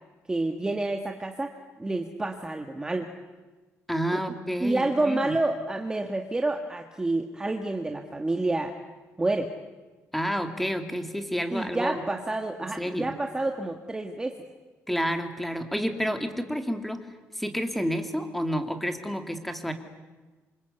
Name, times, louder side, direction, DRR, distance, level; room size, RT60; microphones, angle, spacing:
voice 1, 0.3-1.5 1.8-3.1 4.1-4.2 4.6-8.7 9.2-9.5 11.5-14.4, right 2 dB, 15° right, 4 dB, 1.6 m, -28 dB
voice 2, 3.9-5.4 10.1-12.0 12.8-13.1 14.9-17.1 17.3-19.7, equal, 5° left, 6 dB, 2.5 m, -30 dB
27.0 x 26.0 x 8.2 m, 1.2 s
cardioid pair, 145°, 5 cm